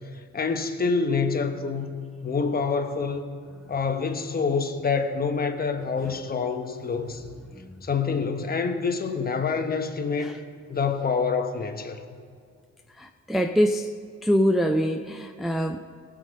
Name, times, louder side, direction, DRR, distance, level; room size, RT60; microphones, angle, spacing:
voice 1, 0.3-1.9 2.2-3.2 3.7-7.2 7.8-10.4 10.7-12.0, left 5 dB, 30° left, 6 dB, 1.1 m, -26 dB
voice 2, 13.0-13.9 14.2-15.8, equal, ahead, 4 dB, 0.5 m, -24 dB
19.0 x 6.4 x 5.2 m, 2.2 s
cardioid pair, 90°, 30 cm